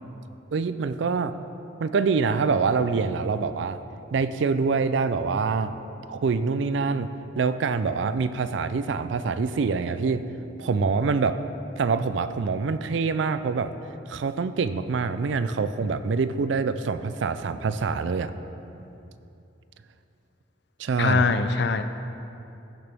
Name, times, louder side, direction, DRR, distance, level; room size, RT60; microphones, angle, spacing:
voice 1, 0.5-1.4 1.8-3.8 4.1-5.7 6.1-7.1 7.4-10.2 10.6-11.4 11.8-13.7 14.1-18.3 20.8-21.2, right 4 dB, 70° right, 12 dB, 0.4 m, -25 dB
voice 2, 21.0-21.8, left 4 dB, 60° left, 10 dB, 0.4 m, -22 dB
15.5 x 6.7 x 3.5 m, 2.8 s
head